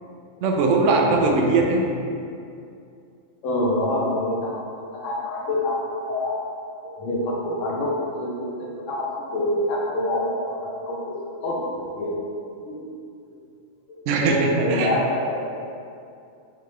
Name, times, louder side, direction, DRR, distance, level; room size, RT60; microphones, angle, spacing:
voice 1, 0.4-1.8 14.1-14.9, right 3 dB, 70° right, 0 dB, 0.9 m, -20 dB
voice 2, 3.4-4.6 4.9-6.4 7.0-11.2 11.4-12.1 12.7-12.8 13.9-15.4, left 1 dB, 75° left, -4 dB, 1.1 m, -26 dB
3.8 x 3.3 x 3.1 m, 2.5 s
omnidirectional pair, 1.4 m